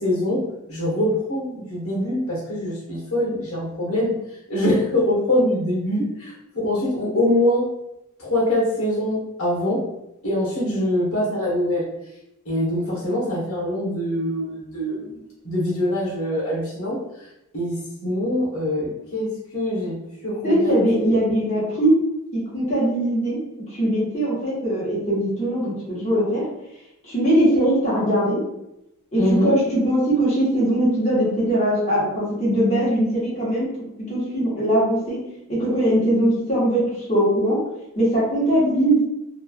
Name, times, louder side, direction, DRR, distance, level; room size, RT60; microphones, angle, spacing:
voice 1, 0.0-0.4 0.7-4.1 4.5-7.6 8.2-9.8 10.2-11.9 12.5-15.2 15.4-17.0 17.5-17.7 18.0-20.0 20.2-21.1 29.2-29.5, left 1 dB, 70° left, -5 dB, 1.0 m, -23 dB
voice 2, 20.4-22.0 22.3-23.4 23.7-26.4 27.0-28.4 29.1-33.7 34.1-35.2 35.5-37.6 38.0-39.0, right 1 dB, 30° left, -8 dB, 1.1 m, -21 dB
3.0 x 2.3 x 2.2 m, 0.86 s
head